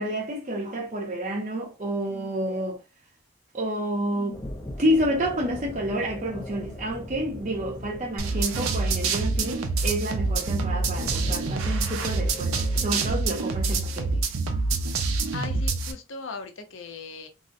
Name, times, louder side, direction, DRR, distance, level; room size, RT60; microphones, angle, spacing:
voice 1, 0.0-2.8 3.5-4.4 4.8-14.3, right 1 dB, 35° right, 0.6 m, -29 dB
sound 1, 4.3-13.1, left 1 dB, 15° left, 0.4 m, -40 dB
sound 2, 8.2-15.9, right 3 dB, 80° right, 0.5 m, -26 dB
voice 2, 15.3-17.3, left 4 dB, 60° left, 0.6 m, -38 dB
3.8 x 2.0 x 2.5 m
head